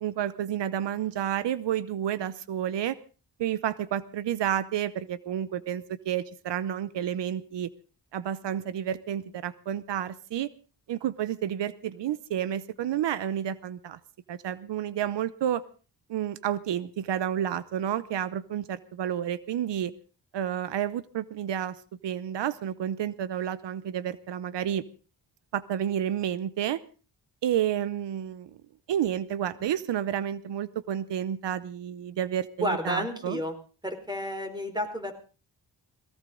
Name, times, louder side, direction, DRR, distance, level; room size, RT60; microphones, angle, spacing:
voice 1, 0.0-3.0 3.4-7.7 8.1-10.5 10.9-14.0 14.3-15.6 16.1-19.9 20.3-21.8 22.0-24.8 25.5-26.8 27.4-28.6 28.9-33.4, right 10 dB, 85° right, 16 dB, 0.9 m, -30 dB
voice 2, 32.6-33.5 33.8-35.1, equal, 10° right, 6 dB, 4.5 m, -31 dB
19.0 x 17.5 x 3.8 m, 0.37 s
cardioid pair, 85°, 42 cm